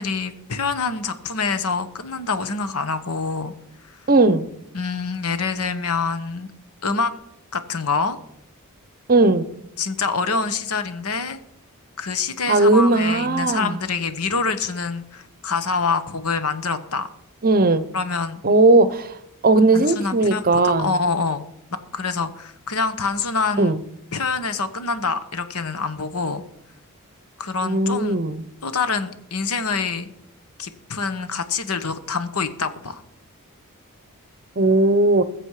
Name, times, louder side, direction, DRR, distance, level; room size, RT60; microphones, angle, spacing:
voice 1, 0.0-3.5 3.9-4.0 4.7-6.5 6.8-7.1 7.5-8.2 9.8-11.4 12.0-17.1 17.9-18.4 19.7-21.4 21.9-23.7 24.1-26.4 27.4-28.2 28.6-30.1 30.6-33.0, left 4 dB, 80° left, 11 dB, 1.2 m, -26 dB
voice 2, 4.1-4.5 9.1-9.5 12.5-13.8 17.4-17.9 18.4-19.1 19.4-20.9 23.6-23.8 27.6-28.4 34.6-35.2, right 2 dB, 40° right, 14 dB, 0.8 m, -17 dB
20.5 x 7.6 x 4.9 m, 0.78 s
head